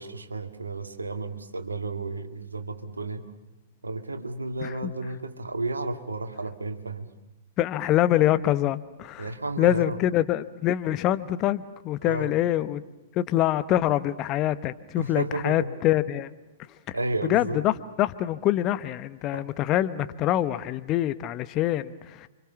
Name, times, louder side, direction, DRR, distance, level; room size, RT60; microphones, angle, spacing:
voice 1, 0.0-3.3 3.8-7.1 9.2-10.0 12.0-12.3 15.0-15.8 16.9-17.6 19.3-19.5, right 2 dB, 80° right, 7 dB, 2.1 m, -32 dB
voice 2, 7.6-9.3 9.6-12.8 13.2-16.3 16.9-17.0 17.3-17.7 18.0-21.9 22.2-22.3, left 13 dB, 30° left, 13 dB, 0.9 m, -25 dB
30.0 x 25.5 x 7.1 m, 0.97 s
figure-of-eight pair, 110°, 0 cm